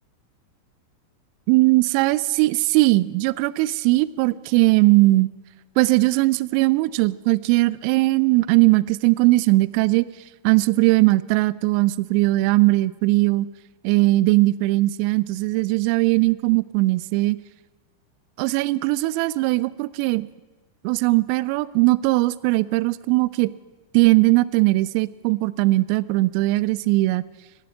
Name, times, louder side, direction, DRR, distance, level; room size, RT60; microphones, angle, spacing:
voice 1, 1.5-5.3 5.8-10.1 10.4-13.5 13.8-17.4 18.4-20.3 20.8-23.5 23.9-27.2, right 20 dB, 45° right, 20 dB, 0.4 m, -19 dB
15.5 x 12.0 x 5.6 m, 1.2 s
figure-of-eight pair, 90°, 0 cm